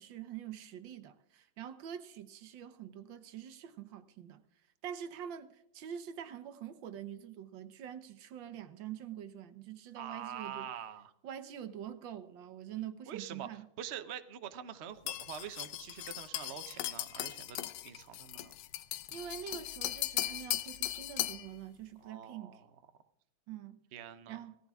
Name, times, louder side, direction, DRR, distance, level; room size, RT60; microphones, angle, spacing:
voice 1, 0.0-4.4 4.8-10.7 11.2-13.7 19.1-22.6 23.5-23.8 24.3-24.6, right 9 dB, 70° right, 1.6 m, -45 dB
voice 2, 10.0-11.1 13.1-13.5 13.8-18.5 22.0-22.6 23.9-24.4, right 9 dB, 55° right, 0.8 m, -45 dB
Stirring A Cup Of Tea, 15.1-21.5, left 14 dB, 85° left, 1.5 m, -38 dB
17.0 x 14.5 x 3.5 m
omnidirectional pair, 2.2 m